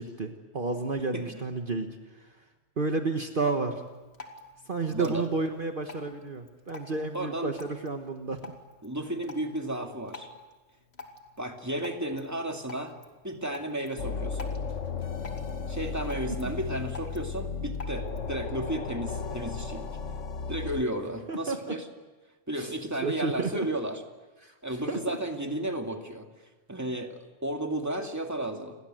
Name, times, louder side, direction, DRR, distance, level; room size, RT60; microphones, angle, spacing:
voice 1, 0.0-1.9 2.2-2.3 2.8-3.8 4.7-8.5 21.3-21.7 22.6-22.7 23.0-23.7 24.4-24.5 24.9-25.2, right 3 dB, 45° right, 5 dB, 1.5 m, -31 dB
Drip, 3.8-18.3, left 3 dB, 60° left, 2.7 m, -49 dB
voice 2, 4.9-5.3 7.1-7.5 8.8-10.3 11.4-12.9 13.2-14.5 15.7-19.9 20.5-21.9 22.5-24.0 24.6-26.3 26.7-28.8, right 1 dB, 15° right, 3 dB, 2.4 m, -33 dB
sound 1, 14.0-20.8, left 5 dB, 85° left, 1.6 m, -35 dB
30.0 x 22.5 x 7.8 m, 1.2 s
omnidirectional pair, 1.2 m